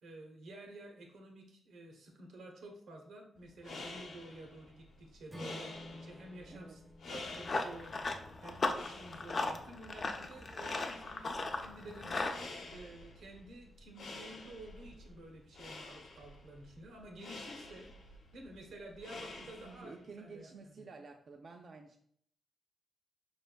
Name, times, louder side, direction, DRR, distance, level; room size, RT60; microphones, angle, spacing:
voice 1, 0.0-6.8 7.1-12.2 12.7-17.9 18.3-20.9, right 1 dB, 85° right, 2 dB, 0.8 m, -51 dB
sound 1, 3.4-20.0, left 3 dB, 85° left, 0.7 m, -50 dB
Acoustic guitar / Strum, 5.3-9.4, left 1 dB, 10° right, 0.6 m, -54 dB
Run, 7.1-12.4, left 3 dB, 40° left, 0.4 m, -37 dB
voice 2, 19.4-22.0, right 4 dB, 50° right, 3 dB, 0.3 m, -51 dB
5.0 x 3.3 x 2.2 m, 0.66 s
cardioid pair, 110°, 0 cm